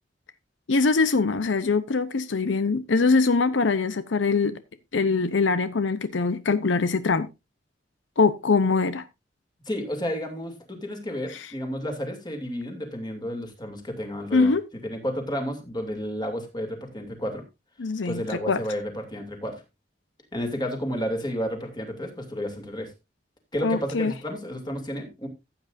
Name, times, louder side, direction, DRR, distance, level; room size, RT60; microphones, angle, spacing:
voice 1, 0.7-4.6 4.9-7.3 8.2-9.0 11.3-11.5 14.3-14.6 17.8-18.6 23.6-24.1, left 4 dB, 90° left, 0.7 m, -23 dB
voice 2, 9.7-17.4 18.0-19.6 20.3-22.9 23.5-25.3, equal, 25° left, 2.7 m, -31 dB
14.5 x 8.7 x 2.6 m
head